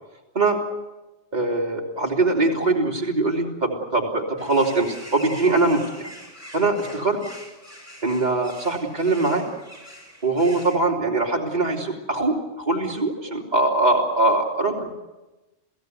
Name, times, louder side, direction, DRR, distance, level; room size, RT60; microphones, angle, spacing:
voice 1, 1.3-6.1 6.5-7.2 8.0-9.4 10.2-14.9, right 2 dB, 40° right, -2 dB, 3.3 m, -22 dB
sound 1, 4.4-10.8, equal, 30° left, 6.6 m, -43 dB
30.0 x 16.5 x 8.2 m, 1.1 s
omnidirectional pair, 1.2 m